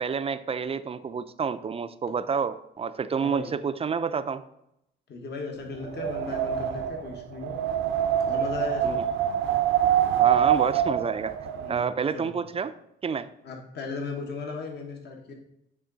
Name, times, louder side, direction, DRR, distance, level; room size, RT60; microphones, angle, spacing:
voice 1, 0.0-4.4 8.8-9.0 10.2-11.3 11.7-12.7 13.0-13.3, right 6 dB, 30° right, 13 dB, 0.3 m, -29 dB
voice 2, 3.2-3.5 5.1-7.6 8.3-9.0 11.5-11.8 12.1-12.3 13.4-15.3, left 4 dB, 55° left, 2 dB, 1.2 m, -36 dB
Wind, 5.8-11.8, right 10 dB, 85° right, 0.6 m, -25 dB
8.6 x 3.6 x 3.9 m, 0.79 s
cardioid pair, 90°, 20 cm